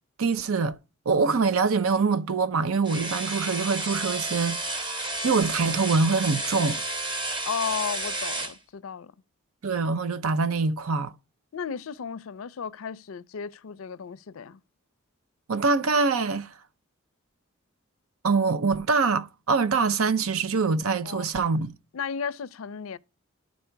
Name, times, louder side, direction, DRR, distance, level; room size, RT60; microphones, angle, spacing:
voice 1, 0.2-0.8 1.1-6.8 9.6-11.1 15.5-16.5 18.2-21.7, right 4 dB, 85° right, 0.6 m, -24 dB
sound 1, 2.8-8.6, right 2 dB, 20° right, 0.9 m, -31 dB
voice 2, 7.5-9.1 11.5-14.6 21.0-21.2 21.9-23.0, left 7 dB, 75° left, 0.4 m, -34 dB
12.5 x 4.2 x 4.5 m
head